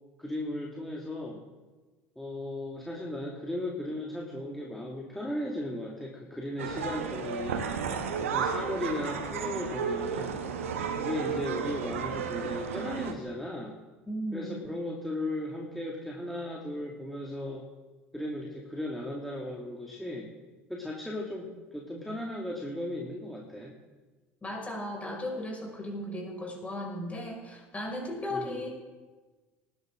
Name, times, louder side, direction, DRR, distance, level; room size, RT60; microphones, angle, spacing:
voice 1, 0.2-1.4 2.2-7.6 8.2-10.4 11.0-13.7 14.3-17.6 18.1-20.3 20.7-23.7 28.3-28.6, left 1 dB, 5° left, -2 dB, 2.3 m, -36 dB
sound 1, 6.6-13.1, right 6 dB, 75° right, 1.2 m, -33 dB
voice 2, 14.1-14.6 24.4-28.7, left 1 dB, 20° left, 0 dB, 5.5 m, -36 dB
19.5 x 10.5 x 3.8 m, 1.3 s
figure-of-eight pair, 70°, 7 cm